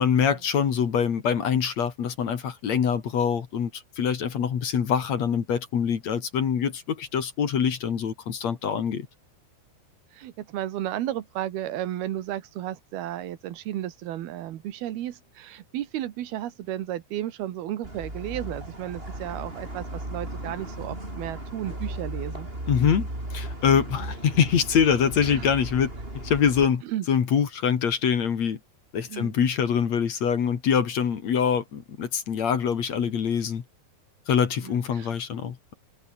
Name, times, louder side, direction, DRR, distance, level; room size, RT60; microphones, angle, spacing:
voice 1, 0.0-9.1 22.7-25.9 26.1-26.8 27.1-28.6 28.9-33.6 34.3-35.7, left 7 dB, 50° left, 3.1 m, -24 dB
voice 2, 10.1-22.5 25.3-25.5 26.8-27.1 29.1-29.4 34.6-35.2, right 13 dB, 90° right, 3.4 m, -33 dB
sound 1, 17.8-26.7, right 1 dB, 15° right, 7.3 m, -36 dB
omnidirectional pair, 4.3 m